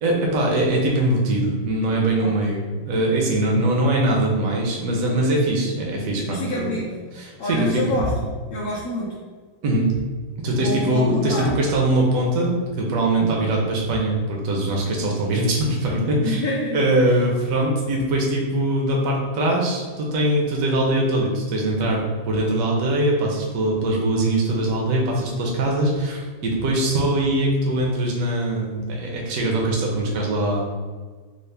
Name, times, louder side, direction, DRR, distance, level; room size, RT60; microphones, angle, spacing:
voice 1, 0.0-6.7 7.2-7.8 9.6-9.9 10.4-16.4 16.7-30.7, right 1 dB, 65° right, -1 dB, 0.8 m, -22 dB
voice 2, 6.3-7.1 7.4-9.2 10.6-11.5 13.2-13.5 16.2-17.1, left 2 dB, 70° left, -7 dB, 0.9 m, -27 dB
4.0 x 2.1 x 3.3 m, 1.5 s
omnidirectional pair, 2.2 m